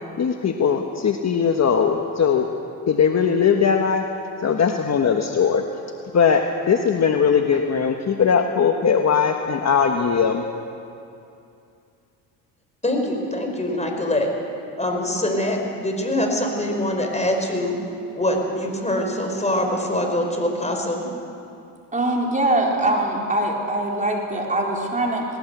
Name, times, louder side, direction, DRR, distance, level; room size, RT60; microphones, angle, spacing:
voice 1, 0.2-2.5 2.9-4.0 4.4-5.6 6.1-10.4, left 6 dB, 35° left, 4 dB, 1.3 m, -19 dB
voice 2, 12.8-14.3 14.8-17.8 18.1-21.1, left 1 dB, 15° left, 2 dB, 4.9 m, -24 dB
voice 3, 21.9-25.3, right 1 dB, 15° right, -1 dB, 4.3 m, -22 dB
19.5 x 18.5 x 8.1 m, 2.6 s
supercardioid pair, 85°, 46 cm